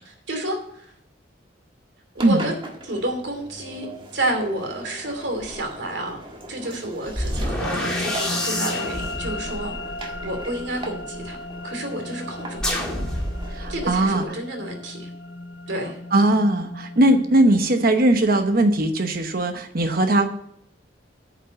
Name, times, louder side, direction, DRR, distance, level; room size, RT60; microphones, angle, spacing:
voice 1, 0.0-0.9 2.1-2.5 2.8-3.9 4.1-6.2 6.5-9.7 10.2-11.4 11.6-12.8 13.7-15.1 15.7-16.0, right 1 dB, 70° right, 3 dB, 2.7 m, -30 dB
Engine, 2.2-14.2, right 1 dB, 30° right, 1.5 m, -40 dB
sound 1, 5.4-5.6 7.1-11.2 12.6-14.0, left 1 dB, 5° left, 2.2 m, -29 dB
sound 2, 7.6-18.2, left 2 dB, 70° left, 0.8 m, -36 dB
voice 2, 13.5-14.2 16.1-20.3, right 1 dB, 55° right, 7 dB, 1.0 m, -19 dB
9.5 x 5.6 x 7.8 m, 0.71 s
head